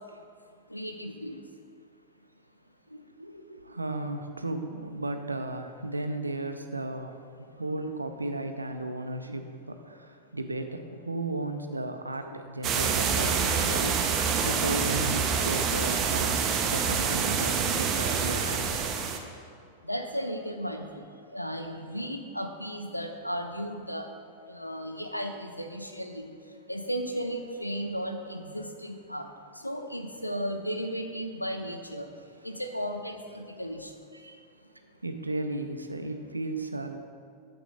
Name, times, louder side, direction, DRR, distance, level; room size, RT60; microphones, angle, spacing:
voice 1, 0.7-1.4 2.9-3.4 7.8-7.9 8.2-8.3 12.3-12.4 12.9-13.0 13.6-13.9 19.9-20.9 21.3-24.1 24.5-26.3 26.7-29.3 29.6-32.0 32.4-33.9, equal, 90° left, 6 dB, 0.6 m, -35 dB
voice 2, 3.6-14.0 14.4-16.4 16.7-18.7 34.1-34.4 35.0-37.0, right 2 dB, 80° right, 7 dB, 0.6 m, -34 dB
sound 1, 12.6-19.2, right 6 dB, 30° right, 0.7 m, -27 dB
9.0 x 7.0 x 3.8 m, 2.3 s
figure-of-eight pair, 90°, 0 cm